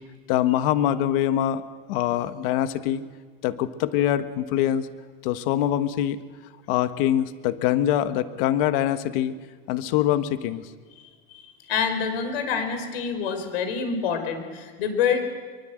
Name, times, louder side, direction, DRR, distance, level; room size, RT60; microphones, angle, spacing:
voice 1, 0.3-1.6 1.9-3.0 3.4-4.9 5.2-6.2 6.7-9.3 9.7-10.6, left 11 dB, 70° left, 10 dB, 1.5 m, -24 dB
voice 2, 11.0-15.2, left 6 dB, 85° left, 7 dB, 5.1 m, -27 dB
24.0 x 23.5 x 7.8 m, 1.5 s
supercardioid pair, 135°, 30 cm